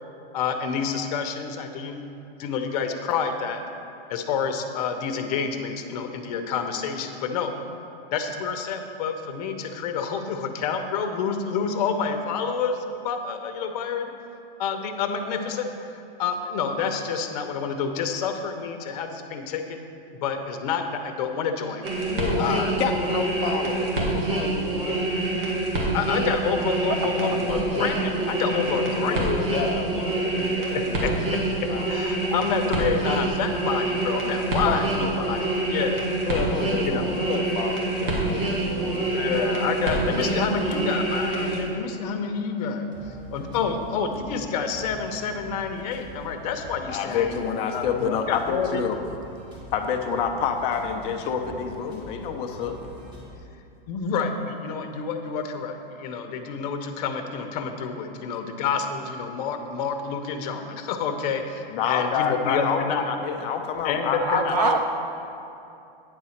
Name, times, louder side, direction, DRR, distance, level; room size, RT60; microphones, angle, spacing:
voice 1, 0.3-2.0 2.4-3.6 4.1-7.5 8.1-14.1 14.6-15.7 15.9-19.8 20.1-21.9 22.4-22.7 25.9-29.4 30.7-36.1 36.8-37.1 39.1-47.4 47.7-48.8 53.5-63.1 63.8-64.6, left 6 dB, 40° left, 6 dB, 0.8 m, -28 dB
sound 1, 21.8-41.6, right 2 dB, 70° right, 2.0 m, -26 dB
voice 2, 22.1-25.2 29.1-31.2 31.7-31.8 34.7-34.8 35.3-35.4 36.3-39.6 46.9-49.0 49.7-52.8 61.7-64.8, left 6 dB, 20° left, 4 dB, 0.4 m, -28 dB
voice 3, 27.2-27.6 64.2-64.8, right 6 dB, 45° right, 6 dB, 0.4 m, -26 dB
sound 2, 42.9-53.3, equal, 15° right, 1.7 m, -45 dB
9.3 x 4.1 x 6.4 m, 2.7 s
hypercardioid pair, 145°, 30 cm